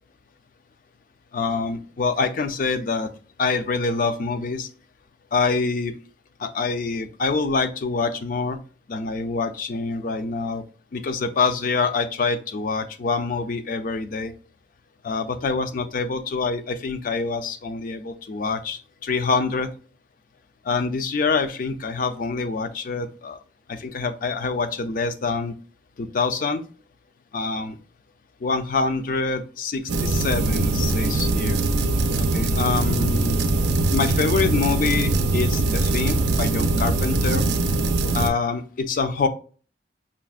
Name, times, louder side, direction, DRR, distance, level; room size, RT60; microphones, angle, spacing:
voice 1, 1.3-3.1 3.4-4.7 5.3-6.0 6.4-8.6 8.9-10.6 10.9-14.3 15.0-19.7 20.6-23.4 23.7-25.5 26.0-26.6 27.3-27.8 28.4-31.6 32.2-33.4 33.9-37.5 38.1-39.3, left 4 dB, 50° left, 9 dB, 0.4 m, -25 dB
sound 1, 29.9-38.3, right 2 dB, 75° right, 0.4 m, -22 dB
5.6 x 2.1 x 2.3 m, 0.39 s
head